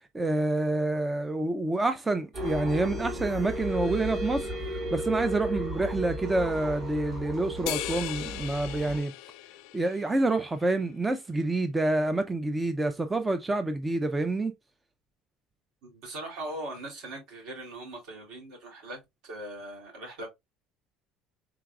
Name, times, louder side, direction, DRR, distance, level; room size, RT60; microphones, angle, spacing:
voice 1, 0.1-9.1 9.7-14.5, right 2 dB, 10° right, 0.4 m, -28 dB
sound 1, 2.3-9.0, equal, 35° right, 1.7 m, -34 dB
sound 2, 7.7-10.4, left 17 dB, 70° left, 0.4 m, -37 dB
voice 2, 15.8-20.3, right 1 dB, 65° right, 3.0 m, -40 dB
4.7 x 3.9 x 2.3 m
cardioid pair, 175°, 0 cm